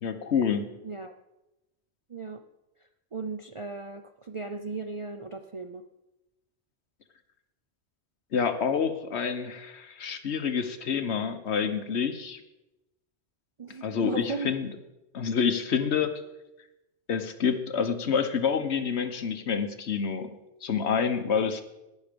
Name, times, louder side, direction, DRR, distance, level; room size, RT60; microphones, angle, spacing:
voice 1, 0.0-0.7 8.3-12.4 13.8-14.7 15.1-16.1 17.1-21.6, left 6 dB, 70° left, 9 dB, 1.2 m, -28 dB
voice 2, 0.8-1.1 2.1-2.4 3.1-5.8 13.6-14.5, right 4 dB, 45° right, 7 dB, 0.4 m, -36 dB
18.0 x 6.4 x 5.2 m, 0.97 s
omnidirectional pair, 1.2 m